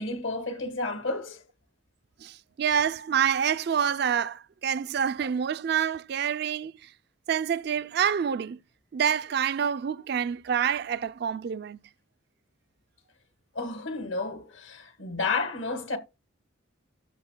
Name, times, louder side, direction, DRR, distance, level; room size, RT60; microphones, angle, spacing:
voice 1, 0.0-1.4 13.5-16.0, left 3 dB, 80° left, 1.5 m, -31 dB
voice 2, 2.2-6.7 7.3-8.6 8.9-11.8, right 8 dB, 55° right, 0.3 m, -27 dB
13.0 x 6.3 x 2.2 m
head